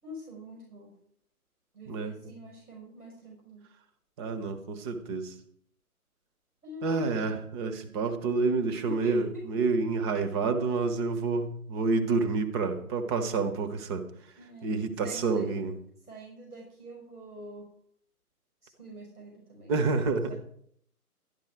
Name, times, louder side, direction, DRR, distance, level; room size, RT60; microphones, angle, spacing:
voice 1, 0.0-1.0 1.7-3.6 6.6-7.4 8.9-9.5 14.4-14.7 15.0-15.5 16.1-17.7 18.6-19.7 20.3-20.4, equal, 80° right, -1 dB, 5.6 m, -45 dB
voice 2, 4.2-5.3 6.8-14.0 14.6-15.7 19.7-20.3, right 4 dB, 15° right, 7 dB, 0.9 m, -28 dB
12.5 x 11.0 x 4.7 m, 0.67 s
figure-of-eight pair, 130°, 45 cm